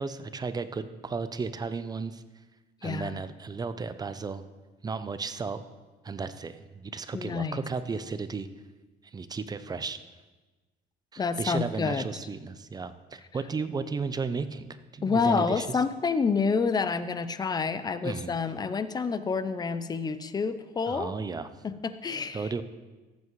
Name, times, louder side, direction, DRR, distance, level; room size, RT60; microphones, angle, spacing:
voice 1, 0.0-2.2 2.8-4.4 4.8-5.6 6.0-8.5 9.1-10.0 11.1-14.7 14.9-15.8 18.0-18.4 20.9-21.5 22.3-22.6, right 4 dB, 25° right, 12 dB, 0.5 m, -34 dB
voice 2, 2.8-3.2 7.1-7.6 11.2-12.0 15.0-21.1 21.6-22.5, left 5 dB, 25° left, 12 dB, 0.5 m, -28 dB
14.0 x 8.3 x 3.1 m, 1.2 s
cardioid pair, 110°, 17 cm